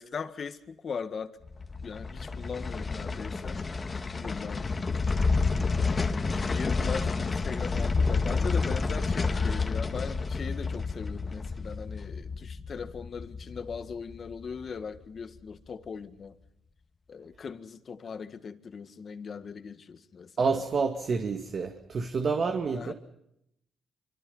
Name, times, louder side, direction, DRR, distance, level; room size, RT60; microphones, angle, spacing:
voice 1, 0.0-1.4 1.8-3.6 4.1-4.8 5.9-16.3 17.1-20.5 22.7-22.9, left 6 dB, 45° left, 1.9 m, -39 dB
sound 1, 1.4-14.6 14.9-15.0, left 4 dB, 30° left, 1.9 m, -30 dB
voice 2, 20.4-22.9, right 4 dB, 50° right, 2.1 m, -28 dB
26.0 x 25.0 x 5.7 m
cardioid pair, 90°, 0 cm